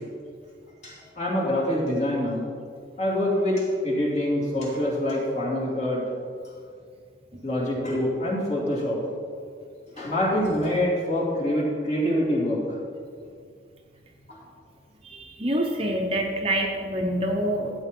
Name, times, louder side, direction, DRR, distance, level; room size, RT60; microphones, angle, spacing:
voice 1, 0.8-2.4 3.0-6.0 7.4-9.0 10.0-12.6 14.3-14.4, left 1 dB, 35° left, -5 dB, 2.7 m, -25 dB
voice 2, 15.0-17.7, right 1 dB, 30° right, 1 dB, 0.8 m, -26 dB
13.5 x 8.8 x 3.7 m, 2.3 s
head